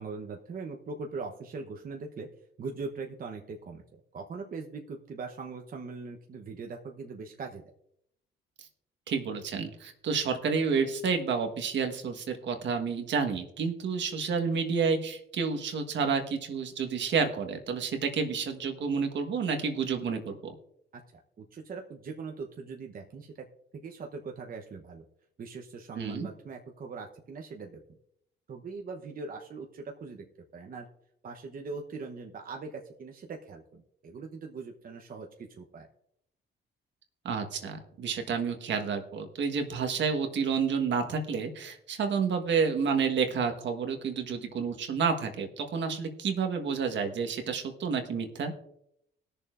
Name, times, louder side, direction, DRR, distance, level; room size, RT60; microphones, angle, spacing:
voice 1, 0.0-2.3 2.6-7.6 20.9-23.5 23.8-25.0 25.4-27.8 28.5-30.2 30.5-30.9 31.2-35.3 35.6-35.9, right 4 dB, 45° right, 1 dB, 1.0 m, -41 dB
voice 2, 9.1-20.5 25.9-26.3 37.2-48.5, right 5 dB, 65° right, 5 dB, 1.4 m, -30 dB
20.5 x 6.9 x 2.5 m, 0.75 s
cardioid pair, 90°, 20 cm